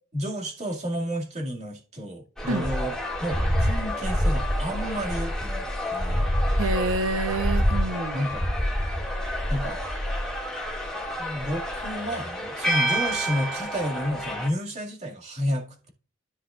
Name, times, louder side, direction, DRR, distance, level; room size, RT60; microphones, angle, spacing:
voice 1, 0.1-6.3 8.1-8.5 9.5-9.8 11.2-15.9, equal, 30° right, 2.3 m, -31 dB
sound 1, 2.4-14.5, equal, 5° left, 2.2 m, -27 dB
voice 2, 6.5-8.3, right 2 dB, 80° right, 0.9 m, -28 dB
13.5 x 5.7 x 2.5 m
head